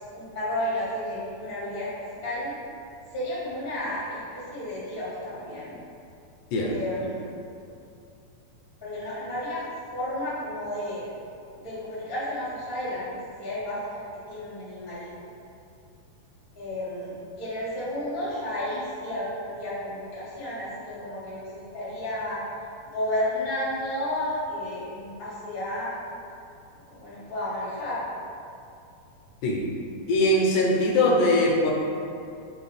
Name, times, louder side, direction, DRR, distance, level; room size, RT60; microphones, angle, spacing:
voice 1, 0.1-2.6 3.1-5.8 6.7-7.3 8.8-9.6 9.9-11.0 11.5-14.0 14.3-15.1 16.5-22.4 22.9-25.9 26.9-28.0, left 1 dB, 60° left, -11 dB, 0.5 m, -32 dB
voice 2, 30.1-31.7, left 1 dB, 80° left, -1 dB, 2.0 m, -21 dB
4.9 x 2.9 x 3.2 m, 2.5 s
omnidirectional pair, 3.8 m